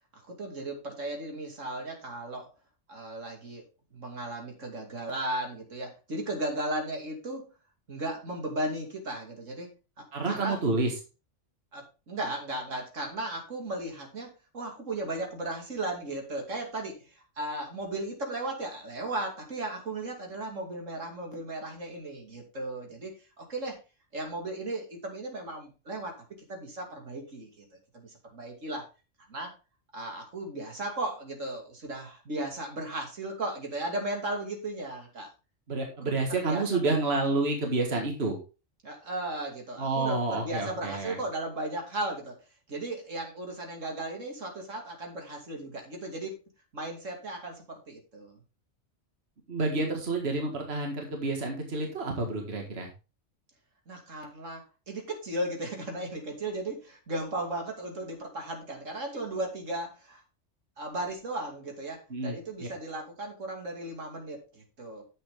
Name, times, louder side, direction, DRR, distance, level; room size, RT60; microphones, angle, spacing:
voice 1, 0.1-2.5 2.9-3.6 3.9-7.5 7.9-9.7 10.3-10.6 11.7-23.1 23.4-23.8 24.1-26.1 26.5-27.6 27.9-28.9 29.3-29.5 29.9-35.3 36.0-36.6 38.8-42.3 42.7-46.4 46.7-48.4 53.9-60.2 60.8-65.0, right 1 dB, 85° right, 2 dB, 3.0 m, -36 dB
voice 2, 10.1-10.9 35.7-38.4 39.8-41.2 49.5-52.9 62.1-62.7, right 3 dB, 55° right, 2 dB, 2.1 m, -29 dB
10.0 x 7.6 x 3.6 m, 0.31 s
omnidirectional pair, 1.3 m